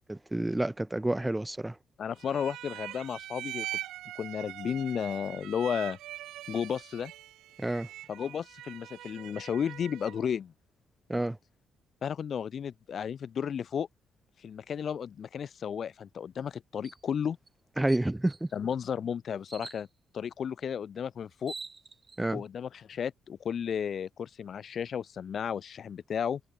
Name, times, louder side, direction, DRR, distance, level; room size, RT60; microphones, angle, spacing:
voice 1, 0.1-1.7 7.6-7.9 11.1-11.4 17.8-18.5 22.2-22.4, right 1 dB, 10° right, 0.5 m, -29 dB
voice 2, 2.0-3.7 4.1-6.0 6.5-7.1 8.1-10.5 12.0-13.9 14.4-17.4 18.5-19.9 20.1-21.5 22.3-26.4, left 8 dB, 55° left, 1.2 m, -33 dB
sound 1, 2.2-10.3, right 14 dB, 85° right, 0.5 m, -42 dB
sound 2, 16.8-17.0 17.5-17.6 17.9-18.5 19.5-19.9 21.0-21.1 21.3-22.2, right 4 dB, 30° right, 1.3 m, -45 dB
cardioid pair, 90°, 0 cm